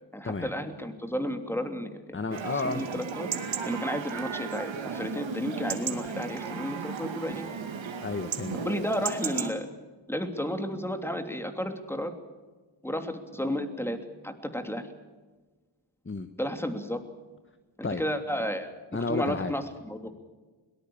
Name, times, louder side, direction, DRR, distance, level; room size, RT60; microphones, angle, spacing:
voice 1, 0.1-3.3 3.6-7.5 8.6-9.7 10.1-12.1 12.8-14.0 14.2-14.8 16.4-17.0 17.8-18.7 19.1-20.1, equal, 5° left, 6 dB, 3.1 m, -32 dB
voice 2, 2.1-2.8 8.0-8.6 16.0-16.3 17.8-18.0 18.9-19.5, left 3 dB, 25° left, 9 dB, 1.4 m, -31 dB
Chatter / Livestock farm animals working animals / Chirp tweet, 2.3-9.5, right 6 dB, 75° right, 2.4 m, -35 dB
22.0 x 19.0 x 7.2 m, 1.3 s
cardioid pair, 65°, 46 cm